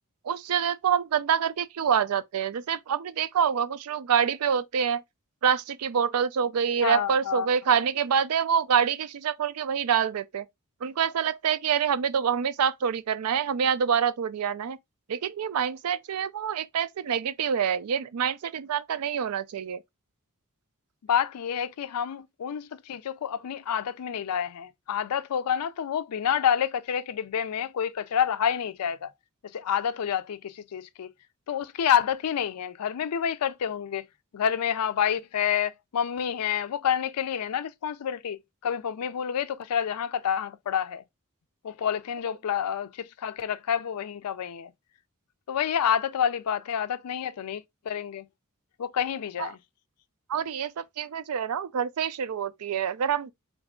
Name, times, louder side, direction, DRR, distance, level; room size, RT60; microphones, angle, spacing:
voice 1, 0.2-5.0 5.4-10.5 10.8-14.8 15.1-19.8 49.4-49.5 50.3-53.3, right 7 dB, 75° right, 0.4 m, -26 dB
voice 2, 6.8-7.5 21.1-29.1 29.5-31.1 31.5-34.1 34.3-41.0 41.6-44.7 45.5-48.3 48.8-49.6, left 8 dB, 85° left, 0.4 m, -28 dB
3.9 x 2.4 x 3.6 m
head